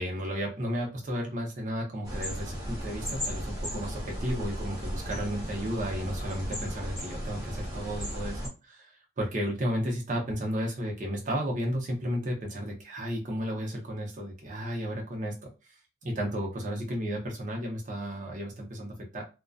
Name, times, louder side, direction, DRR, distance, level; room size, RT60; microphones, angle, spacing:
voice 1, 0.0-19.2, equal, 45° right, 0 dB, 0.7 m, -33 dB
sound 1, 2.0-8.5, equal, 20° right, 1.0 m, -35 dB
2.5 x 2.2 x 2.3 m, 0.30 s
head